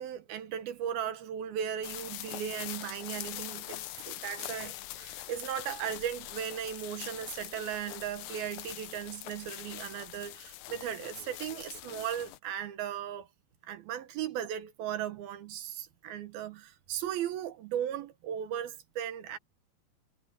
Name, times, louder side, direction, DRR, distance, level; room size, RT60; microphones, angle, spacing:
voice 1, 0.0-13.3 13.6-19.4, right 9 dB, 70° right, 2.8 m, -37 dB
sound 1, 1.8-12.4, left 15 dB, 75° left, 2.3 m, -43 dB
omnidirectional pair, 4.8 m